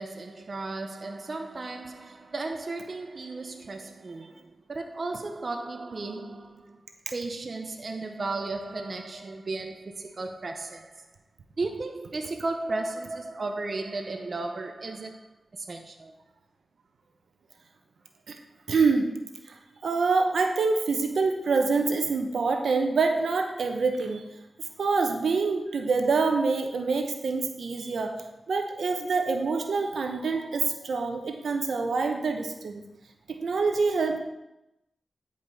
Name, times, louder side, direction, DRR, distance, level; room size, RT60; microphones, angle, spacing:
voice 1, 0.0-6.8 7.1-11.0 11.6-15.3 15.5-16.1, right 3 dB, 55° right, 0.7 m, -35 dB
voice 2, 18.7-19.1 19.5-19.6 19.8-24.2 24.8-32.8 33.3-34.2, right 4 dB, 85° right, 0.9 m, -26 dB
10.0 x 5.0 x 5.4 m
cardioid pair, 65°, 0 cm